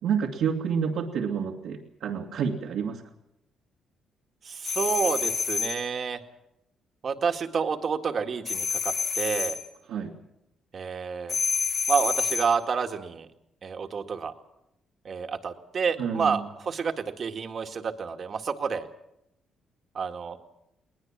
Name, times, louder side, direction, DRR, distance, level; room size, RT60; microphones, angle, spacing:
voice 1, 0.0-3.0 9.9-10.1 16.0-16.5, right 7 dB, 80° right, -4 dB, 2.3 m, -29 dB
voice 2, 4.4-6.2 7.0-9.6 10.7-11.4 11.9-13.3 13.6-14.3 15.0-18.9 19.9-20.4, right 6 dB, 50° right, 5 dB, 1.9 m, -29 dB
sound 1, 4.6-5.8 8.4-9.6 11.3-12.5, left 5 dB, 50° left, 4.1 m, -28 dB
21.0 x 20.0 x 7.4 m, 0.84 s
cardioid pair, 100°, 0 cm